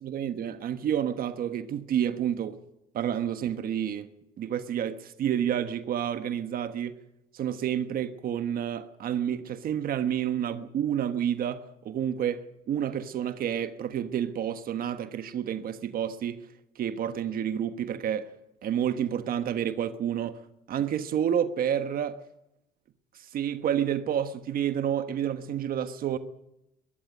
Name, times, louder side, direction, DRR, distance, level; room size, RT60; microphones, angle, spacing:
voice 1, 0.0-2.6 2.9-4.1 4.4-7.0 7.3-16.5 16.7-18.3 18.6-20.4 20.7-22.2 23.1-26.2, right 9 dB, 60° right, 1.3 m, -29 dB
21.5 x 14.0 x 9.4 m
cardioid pair, 110°, 17 cm